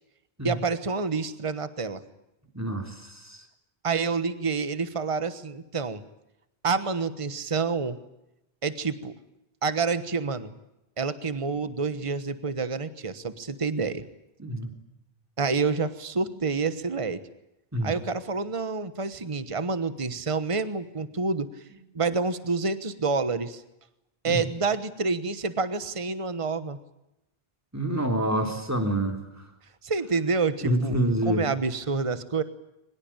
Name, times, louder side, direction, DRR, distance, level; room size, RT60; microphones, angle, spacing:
voice 1, 0.4-2.0 3.8-6.0 6.6-8.0 8.6-9.1 9.6-10.5 11.0-14.0 15.4-17.2 17.8-21.5 21.9-23.6 24.2-26.8 29.8-31.0 31.2-32.4, right 4 dB, 30° right, 12 dB, 1.3 m, -28 dB
voice 2, 2.5-3.5 14.4-14.7 17.7-17.9 24.3-24.4 27.7-29.5 30.6-31.4, right 1 dB, 15° right, 4 dB, 3.6 m, -27 dB
23.5 x 21.5 x 8.9 m, 0.88 s
omnidirectional pair, 1.0 m